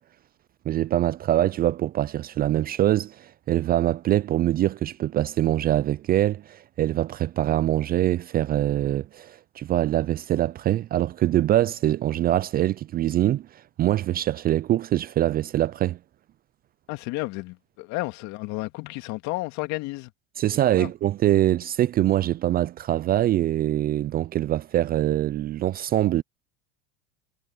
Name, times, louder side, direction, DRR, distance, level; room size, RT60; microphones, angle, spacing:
voice 1, 0.7-16.0 20.4-26.2, right 13 dB, 30° right, 0.4 m, -24 dB
voice 2, 16.9-20.1 20.8-20.9, left 22 dB, 60° left, 2.3 m, -32 dB
hypercardioid pair, 105°, 32 cm